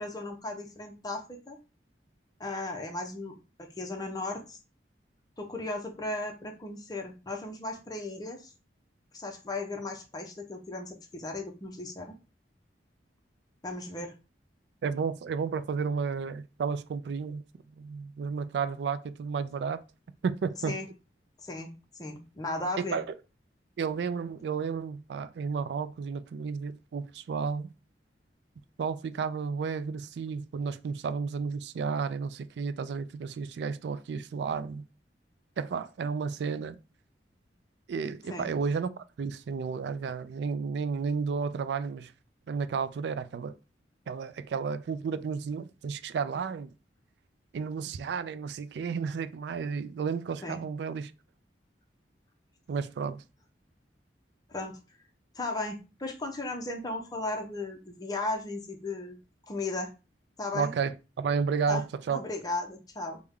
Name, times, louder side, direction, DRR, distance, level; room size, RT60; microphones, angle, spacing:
voice 1, 0.0-1.6 2.4-4.6 5.4-8.5 9.1-12.2 13.6-14.1 20.6-20.9 21.4-21.7 22.0-23.0 38.3-38.5 50.4-50.6 54.5-54.8 55.3-59.2 59.5-59.9 60.4-60.7 61.7-61.8 62.1-63.2, left 2 dB, 20° left, 0.6 m, -36 dB
voice 2, 14.8-17.4 17.8-19.8 20.2-20.8 22.8-23.2 23.8-27.7 28.8-34.8 35.6-36.8 37.9-42.1 42.5-43.5 44.1-46.7 47.5-51.1 52.7-53.2 60.5-62.2, right 5 dB, 65° right, 0.3 m, -32 dB
3.3 x 2.1 x 3.5 m
head